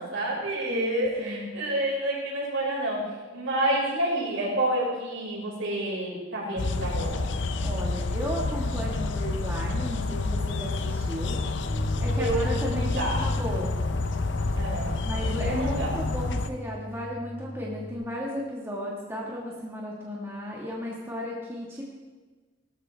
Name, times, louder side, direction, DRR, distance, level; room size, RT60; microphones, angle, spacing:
voice 1, 0.0-3.0 3.3-7.2 12.2-13.3 14.5-15.9, right 1 dB, 70° right, -4 dB, 5.2 m, -29 dB
voice 2, 0.7-1.5 7.6-11.4 12.0-13.7 15.0-21.9, equal, 10° right, -4 dB, 1.7 m, -34 dB
bidding the birds farewell, 6.6-16.5, left 3 dB, 55° left, 0.6 m, -29 dB
Bass guitar, 11.7-17.9, left 1 dB, 25° left, 3.9 m, -35 dB
18.5 x 13.0 x 3.5 m, 1.3 s
head